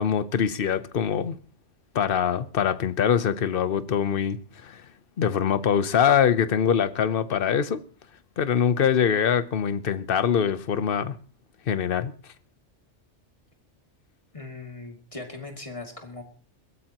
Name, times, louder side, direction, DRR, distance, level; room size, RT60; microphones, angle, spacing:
voice 1, 0.0-1.4 1.9-4.4 4.6-4.8 5.2-7.8 8.4-11.1 11.7-12.1, left 8 dB, 55° left, 1.0 m, -23 dB
voice 2, 14.3-16.2, left 3 dB, 30° left, 2.5 m, -39 dB
22.0 x 15.0 x 3.0 m
omnidirectional pair, 1.2 m